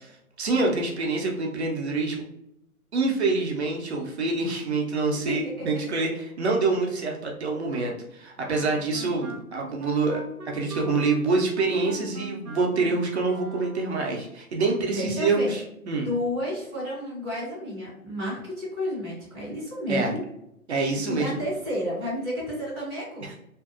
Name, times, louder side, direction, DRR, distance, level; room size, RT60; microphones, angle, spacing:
voice 1, 0.4-2.2 2.9-15.6 15.9-16.1 19.9-20.1 20.7-21.4, right 3 dB, 50° right, 0 dB, 0.6 m, -26 dB
voice 2, 5.2-5.8 14.8-15.5 16.0-20.2 20.8-23.3, left 1 dB, 5° left, -17 dB, 0.4 m, -31 dB
Wind instrument woodwind instrument, 8.4-14.0, right 2 dB, 90° right, 0.7 m, -41 dB
2.5 x 2.1 x 2.3 m, 0.80 s
figure-of-eight pair, 140°, 44 cm